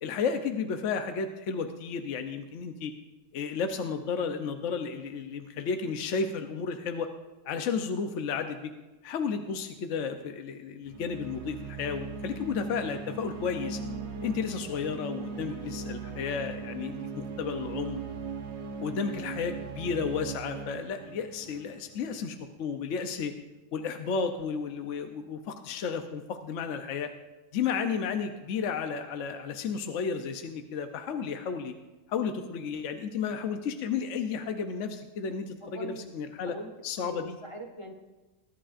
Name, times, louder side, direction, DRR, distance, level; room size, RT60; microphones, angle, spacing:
voice 1, 0.0-2.9 3.3-7.1 7.4-8.7 9.0-13.8 14.2-18.0 18.8-23.3 23.7-27.1 27.5-31.7 32.1-36.6 36.8-37.4, left 6 dB, 70° left, 6 dB, 1.0 m, -33 dB
sound 1, 10.8-22.4, right 4 dB, 55° right, 1.3 m, -39 dB
voice 2, 35.6-36.1 36.5-36.7 37.0-37.9, equal, 25° left, 2 dB, 1.0 m, -42 dB
20.5 x 11.5 x 2.5 m, 1.1 s
omnidirectional pair, 1.4 m